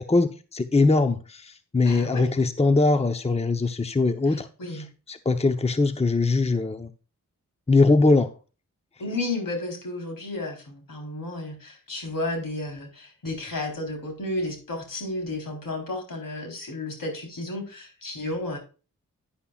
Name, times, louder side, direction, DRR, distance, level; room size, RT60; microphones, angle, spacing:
voice 1, 0.1-4.5 4.7-4.8 5.1-6.9 7.7-8.3, left 3 dB, 20° left, 0.8 m, -21 dB
voice 2, 1.8-2.3 4.3-4.9 9.0-18.6, left 2 dB, 80° left, 3.9 m, -32 dB
10.5 x 10.0 x 2.4 m
cardioid pair, 60°, 33 cm